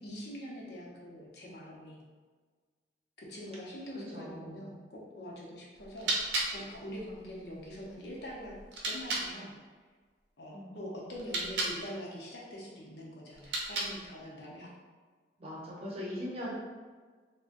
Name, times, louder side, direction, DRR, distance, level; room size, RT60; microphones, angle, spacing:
voice 1, 0.0-2.0 3.2-6.1 6.5-8.6 8.8-9.5 10.4-14.7, equal, 65° left, -3 dB, 0.7 m, -44 dB
voice 2, 3.9-4.8 10.5-10.9 15.4-16.5, left 1 dB, 35° right, -5 dB, 0.7 m, -41 dB
sound 1, 5.7-9.3 11.1-11.8 13.3-14.2, right 2 dB, 80° right, 0.6 m, -36 dB
3.7 x 2.1 x 2.5 m, 1.5 s
head